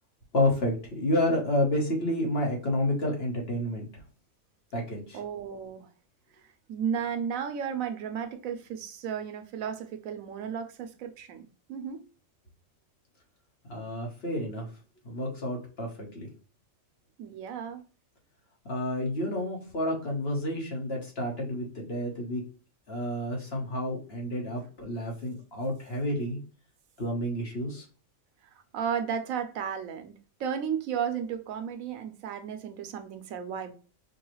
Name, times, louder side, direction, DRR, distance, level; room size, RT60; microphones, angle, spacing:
voice 1, 0.3-3.8 4.7-5.2 13.7-14.7 15.0-16.3 18.6-22.4 22.9-26.4 27.0-27.8, left 1 dB, 50° left, 1.4 m, -30 dB
voice 2, 5.1-5.9 6.7-12.0 17.2-17.8 28.5-30.1 30.4-33.7, right 7 dB, 90° right, 1.1 m, -34 dB
5.1 x 2.3 x 3.0 m
omnidirectional pair, 1.4 m